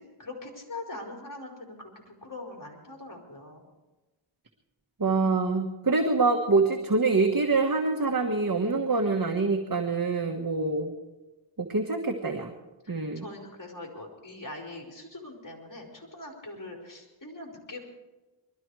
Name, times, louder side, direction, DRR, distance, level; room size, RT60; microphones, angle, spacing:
voice 1, 0.0-3.6 12.8-17.8, left 2 dB, 40° left, 1 dB, 4.6 m, -42 dB
voice 2, 5.0-10.9 11.6-12.5 12.9-13.2, right 3 dB, 45° right, 2 dB, 1.6 m, -25 dB
22.0 x 13.5 x 4.8 m, 1.1 s
cardioid pair, 50°, 48 cm